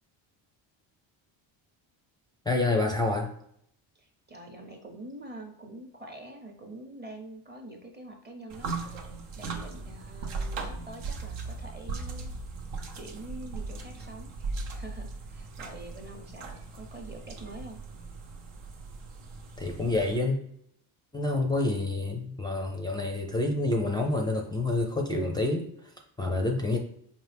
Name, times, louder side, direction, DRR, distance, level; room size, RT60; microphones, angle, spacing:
voice 1, 2.5-3.3 19.6-20.4 21.1-26.8, left 2 dB, 10° left, 2 dB, 0.4 m, -28 dB
voice 2, 3.9-12.3 13.0-14.3 14.7-17.8, right 1 dB, 20° right, 3 dB, 0.8 m, -45 dB
sound 1, 8.5-20.2, right 3 dB, 75° right, 0.8 m, -38 dB
4.5 x 2.5 x 3.4 m, 0.71 s
cardioid pair, 85°, 49 cm